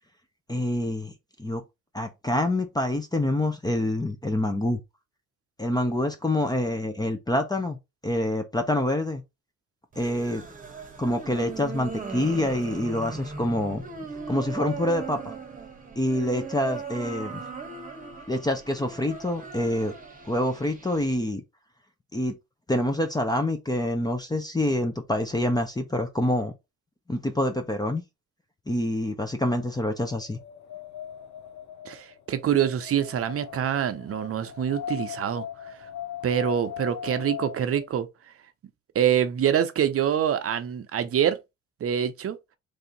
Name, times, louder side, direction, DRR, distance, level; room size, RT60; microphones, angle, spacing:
voice 1, 0.5-1.1 1.4-1.6 1.9-4.8 5.6-7.8 8.0-9.2 10.0-10.4 11.0-13.8 14.3-15.3 16.0-17.4 18.3-19.9 20.3-21.4 22.1-22.3 22.7-26.5 27.1-28.0 28.7-30.4, left 1 dB, 15° left, 0.7 m, -26 dB
sound 1, 9.9-21.2, right 4 dB, 25° right, 1.1 m, -38 dB
Wind, 29.9-37.9, left 9 dB, 75° left, 1.0 m, -39 dB
voice 2, 31.8-35.5 36.2-38.1 38.9-41.4 41.8-42.4, right 9 dB, 50° right, 0.7 m, -25 dB
3.4 x 2.7 x 3.9 m
cardioid pair, 90°, 30 cm